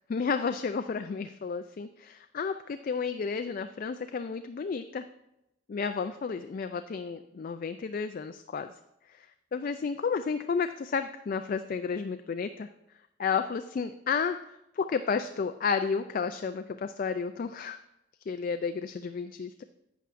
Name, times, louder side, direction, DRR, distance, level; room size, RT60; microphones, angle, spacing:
voice 1, 0.1-5.0 5.7-8.7 9.5-12.7 13.2-14.4 14.8-17.8 18.3-19.6, left 5 dB, 45° left, 9 dB, 0.3 m, -32 dB
11.0 x 8.3 x 2.5 m, 0.86 s
head